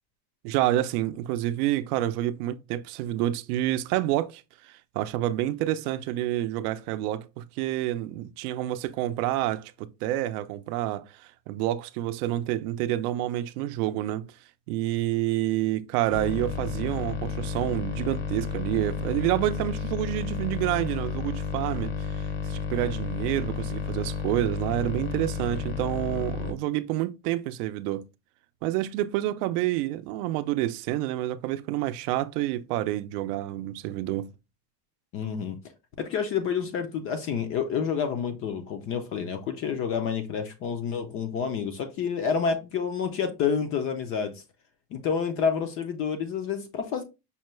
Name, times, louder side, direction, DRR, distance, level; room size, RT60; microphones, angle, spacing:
voice 1, 0.4-11.0 11.5-14.3 14.7-28.0 28.6-34.3, right 14 dB, 70° right, 0.5 m, -28 dB
sound 1, 16.1-26.5, left 5 dB, 90° left, 1.0 m, -32 dB
voice 2, 35.1-35.6 36.0-44.3 44.9-47.0, left 6 dB, 30° left, 0.3 m, -29 dB
5.5 x 2.2 x 3.0 m
supercardioid pair, 145°, 48 cm